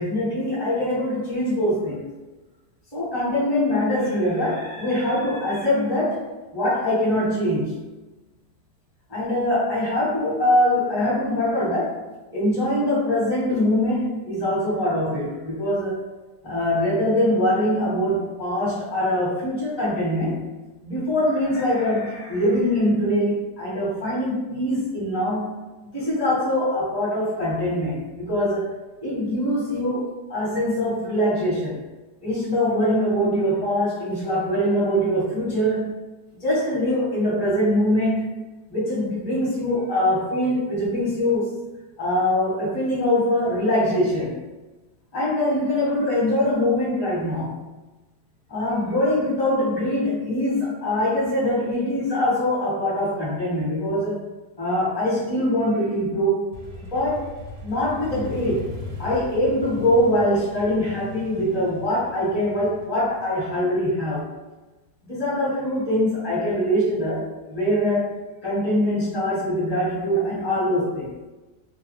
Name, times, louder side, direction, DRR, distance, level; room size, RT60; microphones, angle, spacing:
voice 1, 0.0-2.1 2.9-7.8 9.1-12.0 12.3-16.0 16.4-20.5 20.8-25.7 25.9-28.7 29.0-31.8 32.2-36.0 36.4-38.4 38.7-41.5 42.0-44.4 45.1-47.5 48.5-54.2 54.6-56.4 56.8-57.3 57.6-58.7 59.0-64.3 65.0-71.1, left 1 dB, 15° left, -8 dB, 1.1 m, -23 dB
Motorcycle, 56.5-64.2, left 1 dB, 55° right, 0.6 m, -38 dB
2.7 x 2.2 x 3.0 m, 1.1 s
omnidirectional pair, 1.8 m